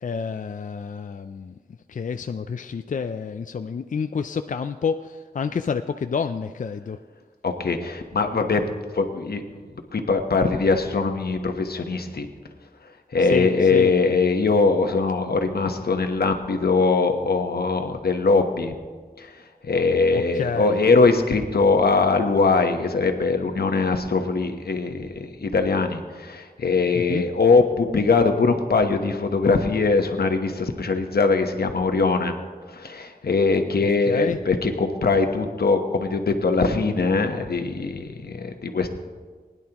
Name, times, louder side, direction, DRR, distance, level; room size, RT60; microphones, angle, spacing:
voice 1, 0.0-1.5 1.9-7.0 13.2-13.9 20.1-20.7 26.9-27.2 34.1-34.4, left 6 dB, 55° left, 8 dB, 0.4 m, -29 dB
voice 2, 7.4-8.7 8.9-9.4 9.9-12.3 13.1-18.7 19.2-19.3 19.6-32.3 32.7-38.9, left 4 dB, 85° left, 5 dB, 1.1 m, -21 dB
20.0 x 10.5 x 3.0 m, 1.5 s
wide cardioid pair, 90°, 16 cm